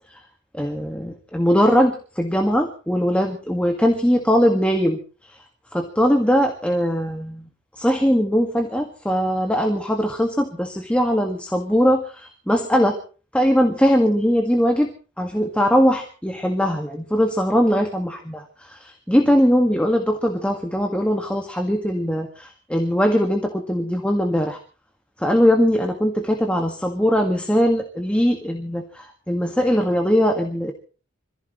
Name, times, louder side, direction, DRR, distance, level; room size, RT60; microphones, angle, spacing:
voice 1, 0.5-5.4 5.7-7.5 7.8-13.0 13.3-14.9 15.2-24.6 25.2-30.7, equal, 5° left, 3 dB, 1.9 m, -20 dB
26.5 x 15.5 x 3.2 m, 0.38 s
head